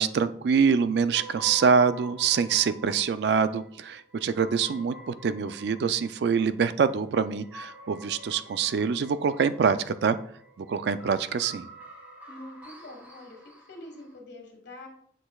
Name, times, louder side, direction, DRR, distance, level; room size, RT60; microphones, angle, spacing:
voice 1, 0.0-10.2 10.6-11.6, right 6 dB, 65° right, 12 dB, 0.4 m, -25 dB
sound 1, 1.1-14.2, right 1 dB, 10° right, 1.8 m, -47 dB
voice 2, 12.3-14.9, left 1 dB, 75° left, 3 dB, 1.6 m, -45 dB
7.6 x 6.3 x 2.3 m, 0.64 s
head